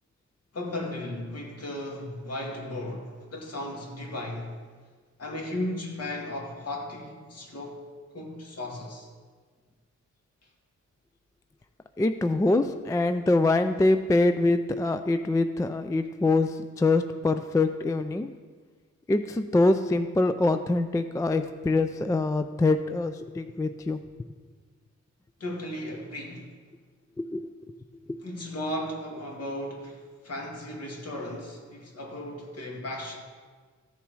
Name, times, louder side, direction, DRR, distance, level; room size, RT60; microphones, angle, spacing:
voice 1, 0.5-4.6 5.2-7.9 8.1-9.1 25.4-26.5 28.2-33.2, left 1 dB, 55° left, 2.1 m, -35 dB
voice 2, 12.0-18.3 19.1-24.0 27.2-27.7 28.1-28.2, left 2 dB, 10° left, 0.3 m, -24 dB
14.0 x 7.0 x 4.7 m
wide cardioid pair, 135°, 30 cm